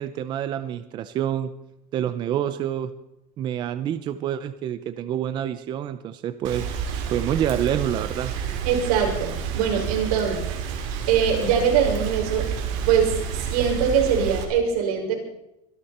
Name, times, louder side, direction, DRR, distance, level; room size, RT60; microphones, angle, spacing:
voice 1, 0.0-1.5 1.9-2.9 3.4-6.7 7.1-8.3, right 10 dB, 25° right, 12 dB, 0.6 m, -27 dB
Rain, 6.4-14.4, right 7 dB, 55° right, 3.2 m, -30 dB
voice 2, 8.7-10.4 11.1-12.5 12.9-15.1, right 7 dB, 80° right, 1 dB, 5.8 m, -22 dB
24.5 x 12.0 x 4.3 m, 0.84 s
cardioid pair, 175°, 19 cm